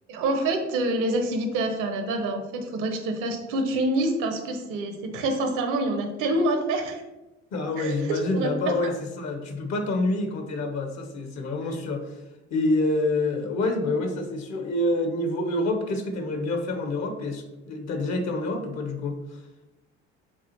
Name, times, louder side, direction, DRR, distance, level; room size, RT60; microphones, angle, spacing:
voice 1, 0.1-7.0 7.8-8.7, right 2 dB, 60° right, 5 dB, 0.9 m, -27 dB
voice 2, 7.5-12.2 12.5-19.2, left 2 dB, 50° left, 5 dB, 0.9 m, -27 dB
6.9 x 2.4 x 2.8 m, 1.0 s
hypercardioid pair, 55°, 34 cm